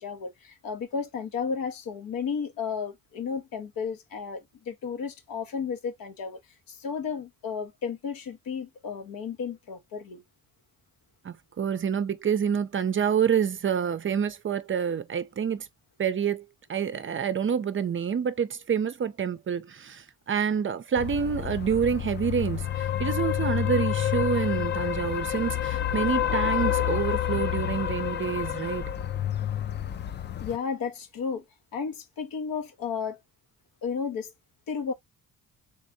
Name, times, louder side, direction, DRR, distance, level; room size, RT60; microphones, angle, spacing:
voice 1, 0.0-6.4 6.7-10.2 30.4-31.4 31.7-33.2 33.8-34.3 34.7-34.9, left 6 dB, 70° left, 1.1 m, -33 dB
voice 2, 11.2-15.7 16.0-16.4 16.7-28.9, right 7 dB, 35° right, 0.5 m, -27 dB
sound 1, 21.0-30.6, left 11 dB, 30° left, 0.4 m, -29 dB
3.5 x 3.4 x 2.6 m
cardioid pair, 90°, 36 cm